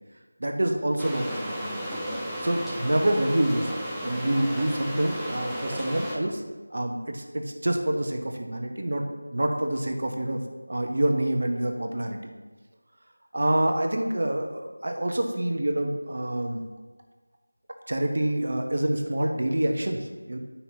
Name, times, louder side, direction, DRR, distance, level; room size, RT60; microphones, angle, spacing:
voice 1, 0.4-2.0 2.4-6.4 6.7-9.0 9.3-10.4 10.7-12.3 13.3-16.6 17.9-20.4, right 1 dB, 55° right, 3 dB, 0.9 m, -27 dB
sound 1, 1.0-6.2, equal, ahead, 0.5 m, -34 dB
9.2 x 5.6 x 2.8 m, 1.3 s
figure-of-eight pair, 170°, 0 cm